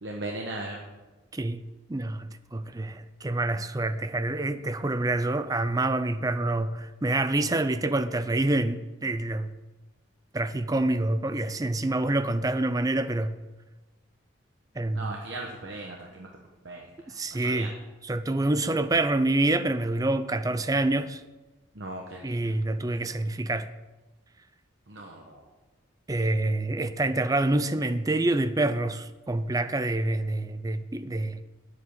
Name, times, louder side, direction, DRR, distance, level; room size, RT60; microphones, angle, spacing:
voice 1, 0.0-0.8 14.9-16.3 16.6-16.8 17.1-17.7 21.7-22.5 24.9-25.4, right 2 dB, 65° right, 1.2 m, -38 dB
voice 2, 1.3-1.6 1.9-9.5 10.3-13.4 14.8-15.2 17.1-17.8 18.0-21.2 22.2-23.7 26.1-31.4, right 2 dB, 20° right, 0.4 m, -27 dB
9.5 x 8.1 x 6.8 m
head